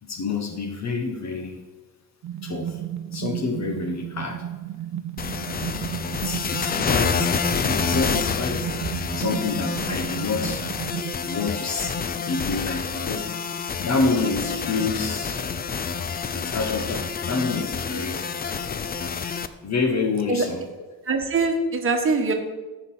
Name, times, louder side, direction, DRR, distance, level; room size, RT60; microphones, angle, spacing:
voice 1, 0.0-1.6 2.4-2.8 3.1-4.5 6.2-8.7 9.1-10.7 11.2-15.4 16.3-18.2 18.7-18.9 19.3-20.7, left 4 dB, 45° left, 4 dB, 1.1 m, -28 dB
sound 1, 2.2-11.1, right 10 dB, 50° right, 0.6 m, -33 dB
sound 2, 5.2-19.5, left 6 dB, 25° left, 0.4 m, -28 dB
voice 2, 21.0-22.3, right 3 dB, 35° right, 3 dB, 1.4 m, -22 dB
14.0 x 4.7 x 5.6 m, 1.2 s
cardioid pair, 140°, 38 cm